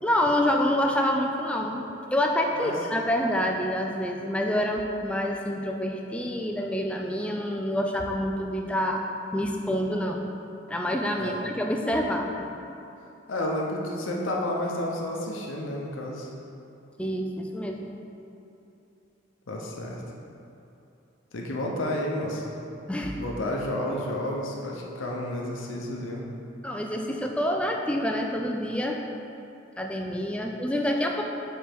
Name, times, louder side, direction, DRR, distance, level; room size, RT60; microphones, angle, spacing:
voice 1, 0.0-9.0 9.3-10.2 10.7-12.3 17.0-17.9 22.9-23.2 26.6-29.0 29.8-31.2, equal, 5° left, 1 dB, 0.3 m, -27 dB
voice 2, 13.3-16.3 19.5-20.0 21.3-22.6 23.2-26.2, left 1 dB, 90° left, -2 dB, 0.7 m, -31 dB
5.0 x 4.5 x 4.5 m, 2.8 s
head